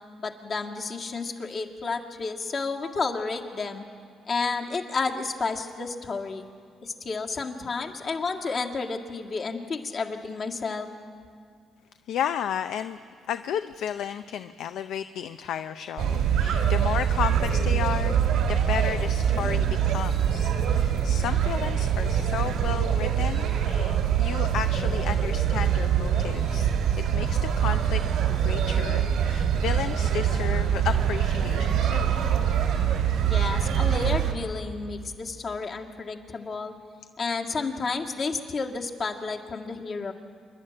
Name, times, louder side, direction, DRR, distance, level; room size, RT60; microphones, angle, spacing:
voice 1, 0.2-3.8 4.3-6.5 6.8-10.9 33.3-36.7 37.2-40.1, left 4 dB, 45° left, 1 dB, 1.9 m, -31 dB
voice 2, 12.1-13.0 13.3-28.0 28.3-32.1, left 9 dB, 80° left, 10 dB, 0.5 m, -33 dB
sound 1, 16.0-34.3, right 8 dB, 85° right, 2.3 m, -24 dB
27.5 x 11.5 x 8.8 m, 2.3 s
cardioid pair, 90°, 0 cm